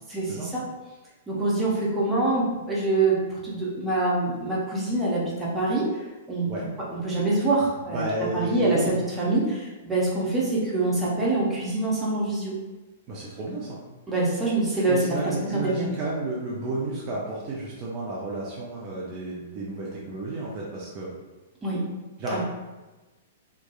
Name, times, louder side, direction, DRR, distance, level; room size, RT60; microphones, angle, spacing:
voice 1, 0.1-0.6 1.3-5.8 6.3-6.5 6.9-8.0 8.3-12.5 14.1-15.9 21.6-21.8 22.3-22.4, right 2 dB, 10° right, -6 dB, 0.8 m, -25 dB
voice 2, 7.9-8.9 13.1-13.8 14.9-21.1 22.2-22.4, right 2 dB, 35° right, -5 dB, 0.4 m, -31 dB
2.8 x 2.3 x 2.2 m, 1.2 s
figure-of-eight pair, 105°, 0 cm